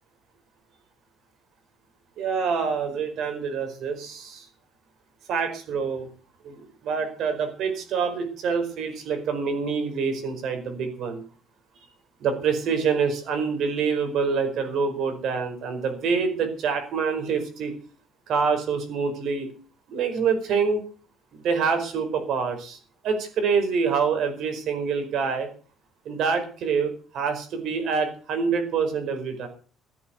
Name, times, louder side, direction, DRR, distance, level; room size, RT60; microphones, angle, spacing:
voice 1, 2.2-4.5 5.3-6.1 6.4-11.2 12.2-17.7 18.3-19.5 19.9-20.8 21.3-22.8 23.0-25.5 26.0-29.5, right 5 dB, 50° right, 6 dB, 4.9 m, -26 dB
16.5 x 8.6 x 8.1 m, 0.42 s
cardioid pair, 170°, 0 cm